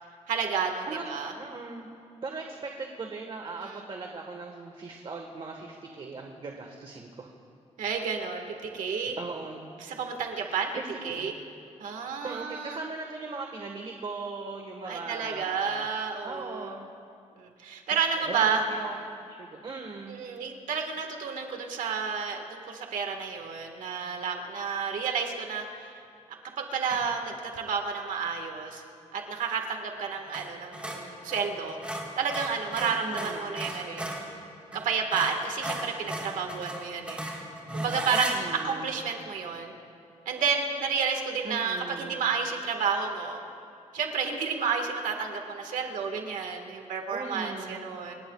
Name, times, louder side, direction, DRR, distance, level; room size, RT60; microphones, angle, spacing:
voice 1, 0.3-1.3 3.6-3.8 7.8-9.2 9.8-10.7 11.0-11.4 11.8-12.8 14.9-16.7 17.4-18.6 20.1-26.0 26.6-28.8 29.1-31.8 32.2-34.3 34.7-37.4 37.7-39.7 40.2-43.4 43.9-48.1, right 6 dB, 90° right, 4 dB, 1.7 m, -31 dB
voice 2, 0.9-1.9 2.2-7.3 9.0-9.7 10.4-11.3 12.2-15.9 16.2-16.9 17.9-20.2 32.8-33.6 38.1-38.9 41.4-42.2 47.1-47.9, right 3 dB, 40° right, 2 dB, 1.5 m, -39 dB
sound 1, 26.9-27.2 30.3-30.5 30.7-34.3 34.7-34.8 35.1-38.4, right 1 dB, 10° right, 3.7 m, -35 dB
28.0 x 18.5 x 2.4 m, 2.4 s
cardioid pair, 120°, 13 cm